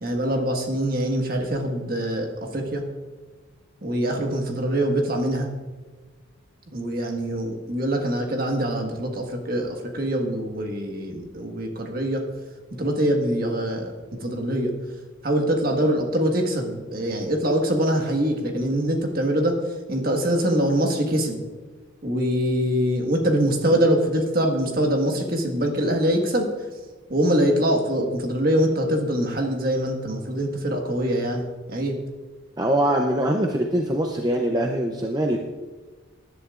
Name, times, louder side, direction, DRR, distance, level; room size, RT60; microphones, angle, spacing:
voice 1, 0.0-2.8 3.8-5.5 6.7-12.2 12.8-13.9 14.2-14.7 15.2-19.6 19.9-21.4 22.0-26.5 27.1-32.0, right 1 dB, 45° right, 2 dB, 1.5 m, -24 dB
voice 2, 32.6-35.4, right 1 dB, 20° right, 2 dB, 0.6 m, -23 dB
19.0 x 11.0 x 2.5 m, 1.3 s
head